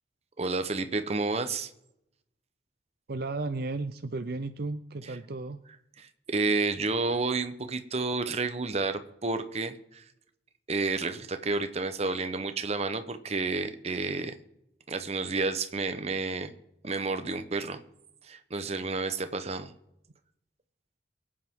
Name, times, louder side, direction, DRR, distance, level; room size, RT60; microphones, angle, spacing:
voice 1, 0.4-1.7 6.0-10.0 10.7-14.3 14.9-16.5 16.8-17.8 18.2-19.7, right 3 dB, 35° right, 9 dB, 0.9 m, -30 dB
voice 2, 3.1-5.6, right 3 dB, 60° right, 9 dB, 0.6 m, -34 dB
24.0 x 8.7 x 3.7 m, 0.82 s
head